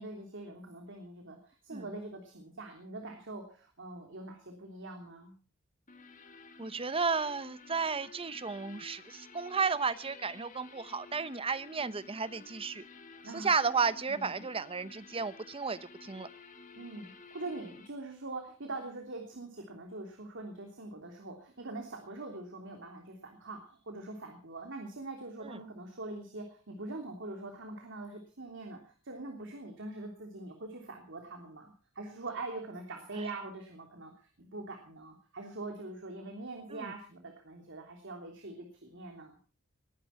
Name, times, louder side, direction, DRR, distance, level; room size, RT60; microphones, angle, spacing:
voice 1, 0.0-5.3 13.2-13.5 14.1-14.3 16.7-39.4, right 2 dB, 60° right, 3 dB, 3.2 m, -43 dB
sound 1, 5.9-17.9, left 4 dB, 40° left, 2.2 m, -53 dB
voice 2, 6.6-12.8 13.3-16.3 25.4-25.6 33.2-33.3 36.7-36.9, right 5 dB, 25° right, 15 dB, 0.8 m, -33 dB
21.0 x 10.5 x 5.8 m, 0.39 s
head